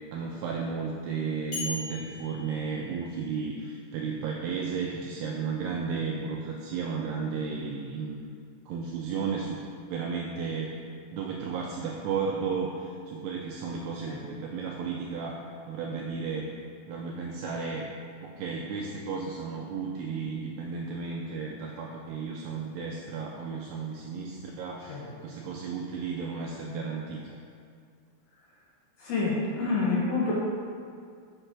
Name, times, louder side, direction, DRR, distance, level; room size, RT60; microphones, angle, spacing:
voice 1, 0.1-8.2 8.7-9.6 9.9-10.7 11.1-16.5 16.9-17.9 18.2-27.4, right 5 dB, 90° right, -1 dB, 2.3 m, -33 dB
sound 1, 1.5-3.6, left 2 dB, 35° left, 1.7 m, -39 dB
voice 2, 29.0-30.3, left 3 dB, 65° left, -5 dB, 2.5 m, -28 dB
6.7 x 6.3 x 5.9 m, 2.2 s
omnidirectional pair, 5.4 m